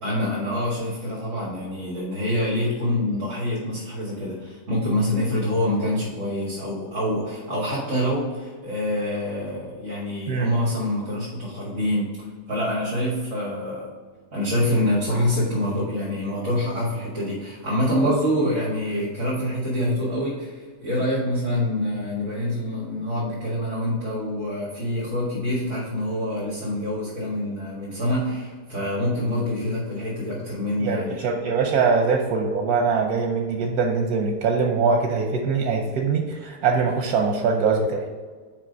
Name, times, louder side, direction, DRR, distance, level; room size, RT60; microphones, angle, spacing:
voice 1, 0.0-12.1 12.5-13.9 14.3-31.2, left 1 dB, 55° right, -7 dB, 2.4 m, -26 dB
voice 2, 30.8-38.1, right 5 dB, 85° right, 2 dB, 1.3 m, -22 dB
6.1 x 5.1 x 5.4 m, 1.5 s
omnidirectional pair, 1.6 m